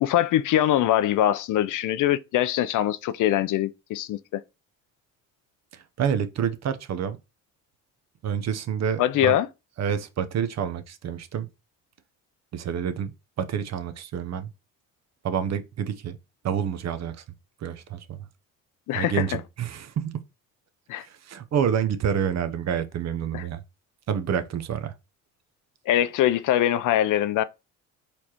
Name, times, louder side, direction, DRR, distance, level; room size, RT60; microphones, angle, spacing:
voice 1, 0.0-4.4 9.0-9.5 18.9-19.3 20.9-21.0 23.3-23.4 25.9-27.4, left 12 dB, 60° left, 0.5 m, -23 dB
voice 2, 5.7-7.2 8.2-9.4 9.8-11.5 12.5-13.1 13.4-14.5 15.2-16.2 16.4-17.2 17.6-18.2 18.9-20.2 21.0-23.6 24.1-24.9, right 8 dB, 50° right, 0.7 m, -28 dB
4.2 x 3.2 x 2.9 m
supercardioid pair, 85°, 36 cm